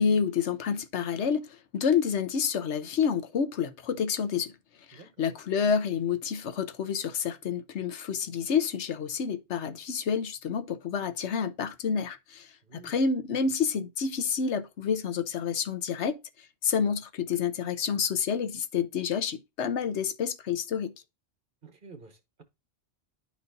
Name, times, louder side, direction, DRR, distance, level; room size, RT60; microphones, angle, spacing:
voice 1, 0.0-4.5 4.9-12.5 12.8-16.2 16.6-20.9, left 6 dB, 80° left, 1.1 m, -29 dB
voice 2, 4.9-5.3 12.6-13.0 21.6-22.4, right 4 dB, 50° right, 1.3 m, -51 dB
11.5 x 4.1 x 2.6 m
omnidirectional pair, 1.2 m